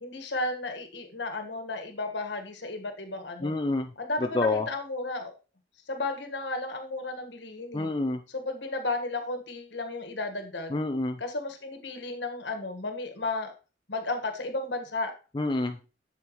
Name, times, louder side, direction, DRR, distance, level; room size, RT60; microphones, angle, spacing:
voice 1, 0.0-3.5 4.0-5.3 5.9-7.9 8.3-10.8 11.2-13.5 13.9-15.1, left 2 dB, 75° left, 6 dB, 1.4 m, -33 dB
voice 2, 3.4-3.9 4.3-4.7 7.7-8.2 10.7-11.2 15.3-15.8, left 2 dB, 25° left, 5 dB, 0.5 m, -27 dB
8.1 x 7.2 x 3.0 m, 0.33 s
head